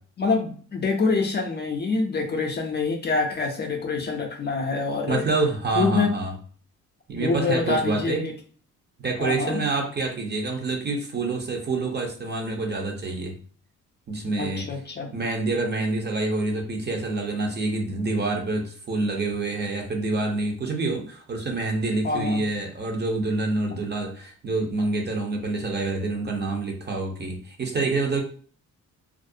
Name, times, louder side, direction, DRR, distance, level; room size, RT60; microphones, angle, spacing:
voice 1, 0.2-5.2 5.7-6.1 7.2-8.3 9.2-9.6 14.4-15.1 22.0-22.4, left 4 dB, 35° left, 3 dB, 0.5 m, -26 dB
voice 2, 5.1-6.3 7.1-8.2 9.0-13.4 14.1-14.7 15.1-28.2, right 3 dB, 35° right, 2 dB, 0.6 m, -27 dB
2.4 x 2.0 x 2.6 m, 0.43 s
cardioid pair, 90°, 30 cm